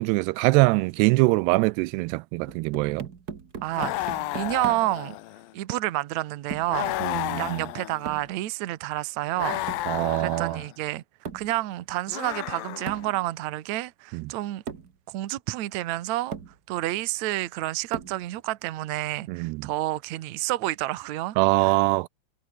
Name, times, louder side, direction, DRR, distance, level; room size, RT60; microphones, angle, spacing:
voice 1, 0.0-3.1 7.0-7.7 9.9-10.6 14.1-14.3 19.3-19.7 21.4-22.1, right 23 dB, 85° right, 2.6 m, -23 dB
sound 1, 2.5-5.0 6.5-6.8 8.1-8.3 9.7-10.0 11.3-11.6 12.9-13.2 14.1-14.2 14.7-15.0 15.8-15.9 16.3-16.6 17.9-18.3, right 6 dB, 50° right, 1.1 m, -38 dB
voice 2, 3.6-5.2 5.5-7.0 7.4-9.6 10.2-11.0 11.3-14.6 15.1-16.4 16.7-21.7, right 17 dB, 70° right, 1.8 m, -29 dB
sound 2, 3.7-5.5 6.7-8.3 9.4-10.7 12.1-13.2, left 15 dB, 75° left, 2.5 m, -32 dB
omnidirectional pair, 4.7 m